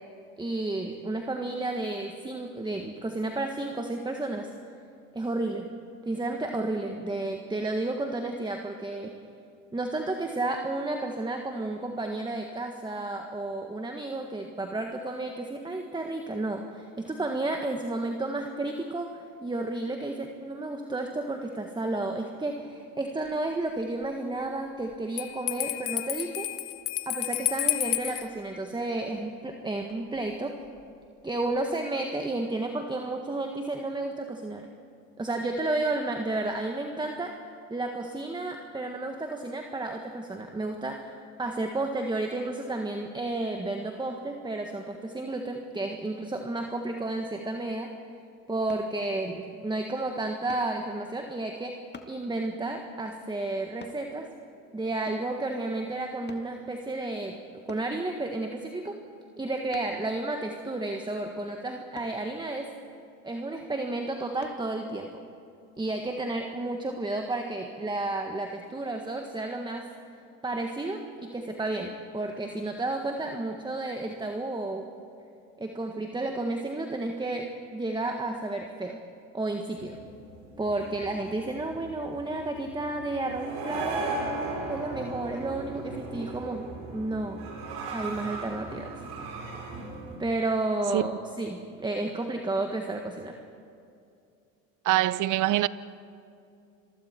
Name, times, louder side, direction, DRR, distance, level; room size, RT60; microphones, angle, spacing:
voice 1, 0.4-4.5 5.1-5.7 6.0-9.1 9.7-26.5 27.0-30.5 31.2-34.7 35.2-37.3 37.7-41.1 41.4-47.9 48.5-51.7 52.1-54.3 54.7-57.4 57.7-59.0 59.4-62.7 63.2-65.2 65.8-69.9 70.4-74.9 75.6-79.0 79.3-80.0 80.6-84.1 84.7-86.7 86.9-87.4 87.9-89.0 90.2-93.4, right 2 dB, 10° right, 1.7 m, -32 dB
Bell, 25.2-28.3, left 16 dB, 60° left, 1.4 m, -30 dB
sound 1, 48.7-48.9 50.5-50.7 51.9-52.2 53.8-54.0 55.1-55.3 56.3-56.5 57.7-57.9 59.7-60.0 61.9-62.2 64.4-64.6 65.2-65.3, left 4 dB, 25° left, 2.0 m, -46 dB
sound 2, 79.8-90.2, right 3 dB, 70° right, 5.6 m, -37 dB
voice 2, 94.8-95.7, right 15 dB, 50° right, 0.8 m, -23 dB
28.5 x 23.0 x 4.6 m
hypercardioid pair, 80°, 40 cm